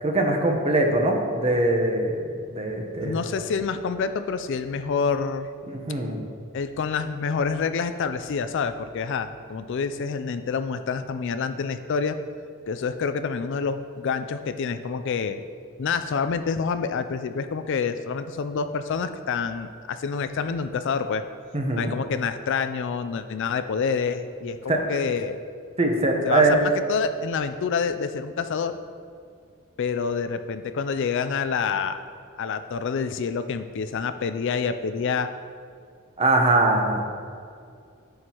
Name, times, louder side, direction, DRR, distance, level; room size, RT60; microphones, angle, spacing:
voice 1, 0.0-2.1 2.5-3.2 5.7-6.2 21.5-21.9 24.7-24.8 25.8-26.6 36.2-37.1, right 2 dB, 30° right, 2 dB, 0.9 m, -22 dB
voice 2, 3.0-5.5 6.5-12.2 12.7-15.4 15.8-21.2 21.7-25.4 26.2-28.8 29.8-32.0 32.4-35.3, left 5 dB, 60° left, 10 dB, 0.4 m, -27 dB
9.5 x 8.0 x 3.0 m, 2.3 s
head